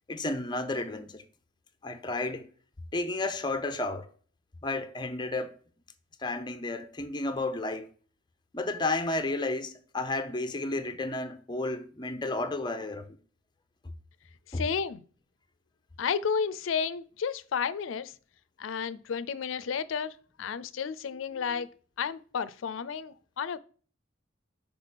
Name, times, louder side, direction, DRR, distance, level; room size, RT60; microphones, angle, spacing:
voice 1, 0.1-1.2 1.8-2.5 2.9-4.1 4.6-5.5 6.2-7.9 8.5-13.2 14.5-14.6, left 2 dB, 25° left, 0.6 m, -32 dB
voice 2, 14.5-15.0 16.0-18.1 18.6-21.7 22.0-23.6, left 6 dB, 85° left, 0.4 m, -32 dB
5.9 x 3.5 x 5.9 m
head